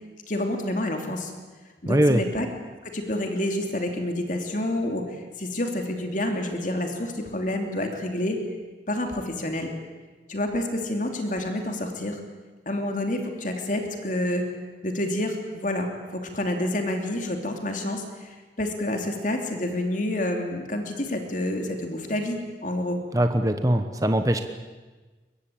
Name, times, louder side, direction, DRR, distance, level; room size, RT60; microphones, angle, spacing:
voice 1, 0.3-1.3 1.8-2.5 2.8-8.4 8.9-9.7 10.3-12.2 12.6-14.4 14.8-23.0, left 1 dB, 45° left, 4 dB, 3.0 m, -28 dB
voice 2, 1.9-2.2 23.1-24.4, right 1 dB, 20° right, 7 dB, 1.1 m, -21 dB
23.0 x 21.5 x 8.7 m, 1.3 s
head